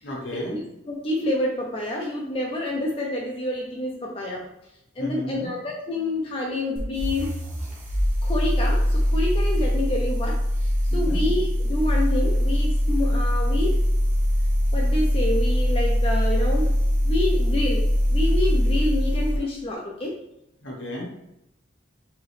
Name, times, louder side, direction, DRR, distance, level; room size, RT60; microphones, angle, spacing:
voice 1, 0.0-0.6 5.0-5.5 10.9-11.3 20.6-21.1, equal, 70° left, -2 dB, 1.3 m, -33 dB
voice 2, 0.5-4.4 5.0-7.3 8.2-10.4 10.9-13.8 14.7-16.8 17.0-20.1, left 1 dB, 30° left, -2 dB, 0.5 m, -28 dB
sound 1, 6.8-19.4, equal, 35° right, 1.0 m, -22 dB
4.8 x 3.0 x 3.3 m, 0.84 s
head